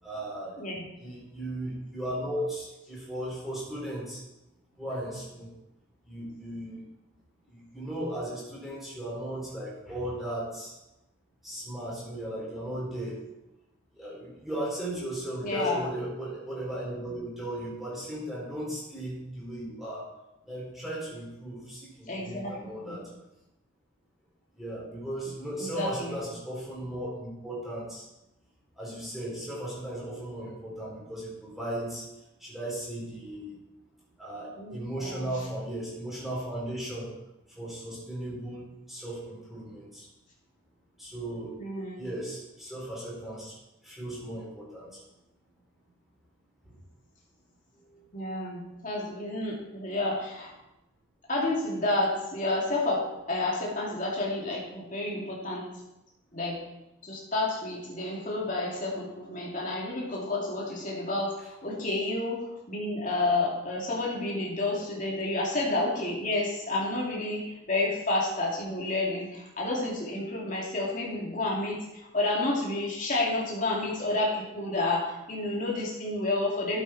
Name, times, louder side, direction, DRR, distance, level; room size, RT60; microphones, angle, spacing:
voice 1, 0.0-0.6 1.0-4.2 4.8-5.5 6.1-6.8 7.7-10.7 11.4-13.2 14.0-20.0 20.5-23.0 24.6-28.0 28.8-32.0 32.4-33.6 34.2-37.1 37.6-40.0 41.0-41.6 42.0-43.6 43.8-44.9 46.6-46.8 47.9-48.0 64.8-64.9, right 1 dB, ahead, -7 dB, 4.0 m, -36 dB
voice 2, 15.4-15.8 22.1-23.0 25.6-26.2 34.6-35.3 41.6-42.0 48.1-50.5 51.3-55.7 56.3-56.6 57.0-76.8, left 2 dB, 40° left, -3 dB, 2.7 m, -30 dB
12.5 x 8.0 x 4.4 m, 0.93 s
head